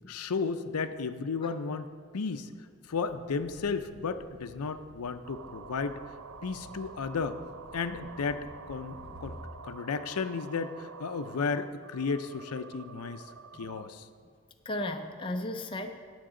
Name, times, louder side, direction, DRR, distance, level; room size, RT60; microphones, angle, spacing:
voice 1, 0.1-1.9 2.1-2.5 2.9-6.0 6.4-7.4 7.7-9.4 9.6-13.2 13.6-14.1, left 5 dB, 90° left, 10 dB, 0.5 m, -33 dB
sound 1, 2.9-9.4, equal, 50° right, 1.2 m, -52 dB
sound 2, 5.2-13.9, right 5 dB, 70° right, 0.5 m, -48 dB
voice 2, 14.6-15.9, left 1 dB, 25° left, 5 dB, 0.5 m, -35 dB
18.0 x 7.2 x 3.8 m, 2.1 s
head